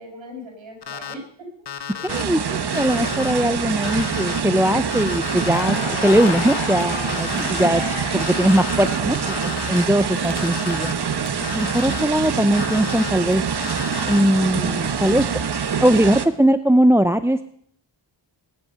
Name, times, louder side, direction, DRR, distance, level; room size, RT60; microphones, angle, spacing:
voice 1, 0.0-1.5 1.9-2.2 7.3-7.8 10.2-10.6, left 1 dB, 75° right, 1 dB, 7.1 m, -40 dB
Alarm, 0.8-1.1 1.7-2.2 2.7-3.3 3.8-4.4 4.9-5.5 6.0-6.6 7.1-7.7 8.2-8.8 9.3-9.9 10.4-10.9 11.4-12.0 12.5-13.1 13.6-14.2, left 8 dB, 55° left, 1.1 m, -33 dB
voice 2, 2.0-7.8 8.1-10.9 11.5-13.4 14.1-15.3 15.8-17.4, right 1 dB, 5° right, 11 dB, 0.5 m, -20 dB
sound 1, 2.1-16.3, right 6 dB, 55° right, 1.2 m, -25 dB
Crackle, 5.4-11.3 11.6-13.3, left 6 dB, 80° left, 1.4 m, -33 dB
20.5 x 11.0 x 5.7 m, 0.66 s
wide cardioid pair, 90°, 46 cm